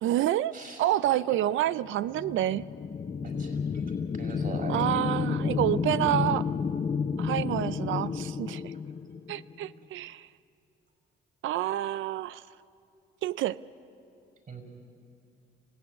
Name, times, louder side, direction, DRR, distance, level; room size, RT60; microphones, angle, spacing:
voice 1, 0.0-0.5 0.8-2.6 4.7-6.5 7.2-8.7 9.3-10.3 11.4-12.5 13.2-13.6, right 13 dB, 80° right, 16 dB, 0.5 m, -28 dB
voice 2, 0.5-0.9 1.3-1.4 3.2-3.8 4.1-5.1 14.5-14.6, right 3 dB, 45° right, 4 dB, 5.6 m, -41 dB
sound 1, 2.0-9.7, left 6 dB, 35° left, 0.7 m, -31 dB
26.5 x 16.5 x 9.6 m, 2.6 s
cardioid pair, 90°, 20 cm